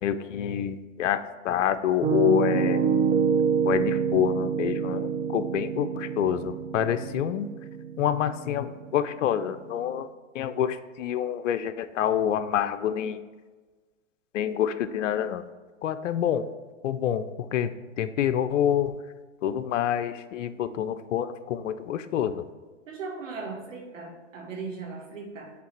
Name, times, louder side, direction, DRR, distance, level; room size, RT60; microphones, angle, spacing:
voice 1, 0.0-2.8 3.6-7.5 8.0-10.1 10.3-13.2 14.3-15.5 15.8-16.5 16.8-17.7 18.0-19.0 19.4-22.4, left 10 dB, 80° left, 11 dB, 0.6 m, -27 dB
Piano, 2.0-9.9, right 6 dB, 20° right, 0.5 m, -27 dB
voice 2, 22.9-25.5, right 4 dB, 90° right, 1 dB, 1.8 m, -38 dB
7.5 x 3.4 x 4.5 m, 1.3 s
hypercardioid pair, 130°, 37 cm